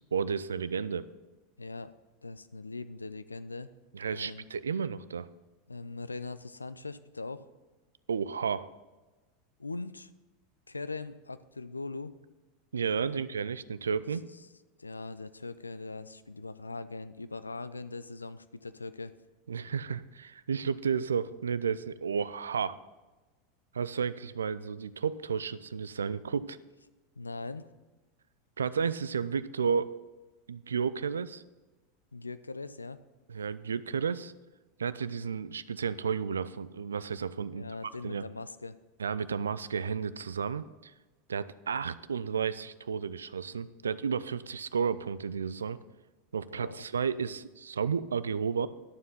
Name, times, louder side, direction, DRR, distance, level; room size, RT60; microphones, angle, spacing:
voice 1, 0.1-1.1 3.9-5.3 8.1-8.7 12.7-14.2 19.5-22.8 23.7-26.6 28.6-30.0 30.5-31.4 33.3-34.3 34.8-37.7 38.0-38.2 39.0-40.9 41.3-45.8 46.3-48.7, right 6 dB, 75° right, 16 dB, 0.4 m, -32 dB
voice 2, 1.6-1.9 2.2-3.7 4.1-4.5 5.7-7.4 9.6-10.1 10.7-12.1 13.0-13.2 14.8-19.1 27.2-27.6 32.1-33.0 37.5-38.7 46.6-46.8, left 3 dB, 85° left, 14 dB, 0.4 m, -41 dB
11.5 x 7.2 x 5.6 m, 1.2 s
figure-of-eight pair, 85°, 0 cm